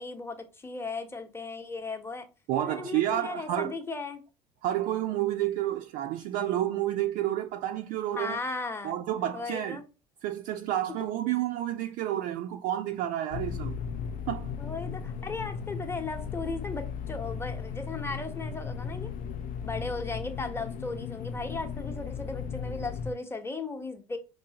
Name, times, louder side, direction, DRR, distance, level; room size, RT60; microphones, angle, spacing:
voice 1, 0.0-2.3 2.6-4.2 8.1-9.0 9.3-9.8 14.6-19.1 19.6-24.2, left 3 dB, 15° left, 0.9 m, -36 dB
voice 2, 2.5-3.7 4.6-8.4 8.8-9.8 10.2-13.8 14.3-14.5, right 12 dB, 60° right, 0.4 m, -30 dB
sound 1, 13.3-23.1, left 7 dB, 55° left, 0.5 m, -36 dB
4.7 x 2.7 x 2.8 m
hypercardioid pair, 65°, 17 cm